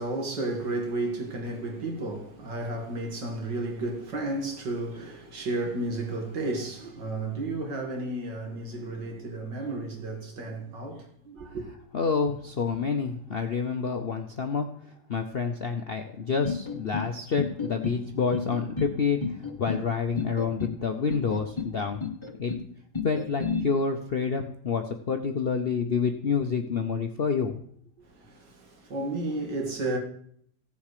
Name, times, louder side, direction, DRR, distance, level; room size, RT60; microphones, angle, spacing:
voice 1, 0.0-11.7 28.0-30.0, right 2 dB, 75° right, 2.6 m, -32 dB
voice 2, 11.9-14.7 15.1-22.0 22.4-22.5 23.0-27.6, left 5 dB, 55° left, 0.6 m, -28 dB
sound 1, 16.4-17.1 17.4-18.0 18.3-18.9 19.2-19.8 20.2-20.8 21.1-21.7 22.0-22.6 22.9-23.6, left 4 dB, 20° left, 0.8 m, -31 dB
15.5 x 7.0 x 4.9 m
omnidirectional pair, 1.9 m